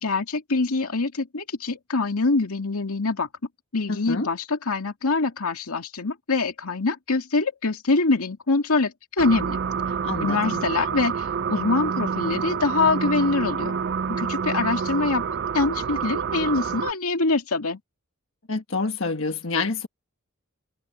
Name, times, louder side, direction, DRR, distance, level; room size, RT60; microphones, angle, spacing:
voice 1, 0.0-3.3 3.7-9.6 10.2-13.8 14.1-15.2 15.5-17.8, left 3 dB, 90° left, 2.3 m, -24 dB
voice 2, 3.9-4.3 10.0-10.6 18.5-19.9, left 3 dB, 65° left, 1.5 m, -27 dB
sound 1, 9.2-16.9, right 6 dB, 50° right, 0.4 m, -28 dB
head